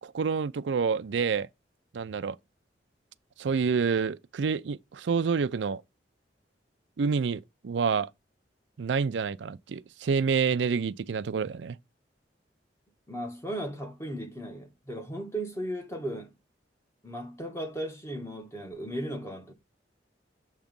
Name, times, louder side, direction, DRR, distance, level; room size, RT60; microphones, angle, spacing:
voice 1, 0.0-1.5 1.9-2.4 3.4-5.8 7.0-8.1 8.8-11.8, right 5 dB, 80° right, 0.4 m, -28 dB
voice 2, 13.1-16.3 17.0-19.5, right 1 dB, 15° left, 1.2 m, -36 dB
7.1 x 3.0 x 5.2 m
head